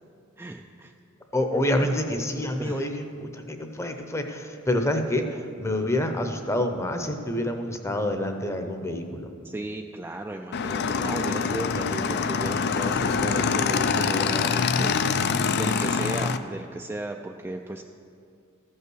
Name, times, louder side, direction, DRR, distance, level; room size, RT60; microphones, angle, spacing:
voice 1, 0.4-0.9 2.6-2.9 9.4-17.8, right 2 dB, 10° right, 3 dB, 0.3 m, -35 dB
voice 2, 1.3-9.3, left 1 dB, 15° left, 5 dB, 0.7 m, -27 dB
Motorcycle / Engine, 10.5-16.4, left 5 dB, 55° left, 0.4 m, -25 dB
14.0 x 5.5 x 6.2 m, 2.4 s
head